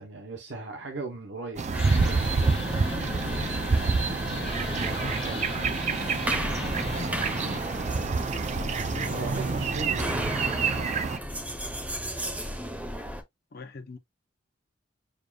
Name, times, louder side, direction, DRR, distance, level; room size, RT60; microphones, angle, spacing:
voice 1, 0.0-2.3 5.1-5.5 9.1-10.2, right 3 dB, 70° right, 0.9 m, -38 dB
sound 1, 1.6-11.2, right 4 dB, 40° right, 0.4 m, -28 dB
sound 2, 1.7-13.2, equal, 10° right, 0.7 m, -35 dB
sound 3, 1.8-7.6, left 4 dB, 30° left, 0.4 m, -38 dB
voice 2, 8.1-9.4 13.5-14.0, left 3 dB, 55° left, 0.7 m, -43 dB
6.7 x 2.4 x 2.3 m
head